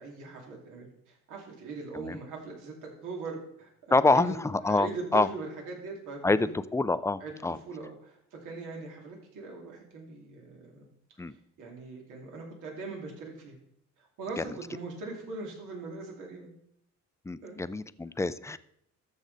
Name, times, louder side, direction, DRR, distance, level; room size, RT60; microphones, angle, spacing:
voice 1, 0.0-4.3 4.6-6.5 7.2-10.8 11.3-13.6 14.0-16.5 17.4-17.6, right 3 dB, 85° right, -1 dB, 2.7 m, -41 dB
voice 2, 3.9-5.3 6.2-7.6 11.2-11.3 14.4-14.5 17.3-18.6, left 3 dB, 10° left, 14 dB, 0.4 m, -26 dB
13.5 x 6.5 x 4.0 m, 0.75 s
cardioid pair, 90°, 30 cm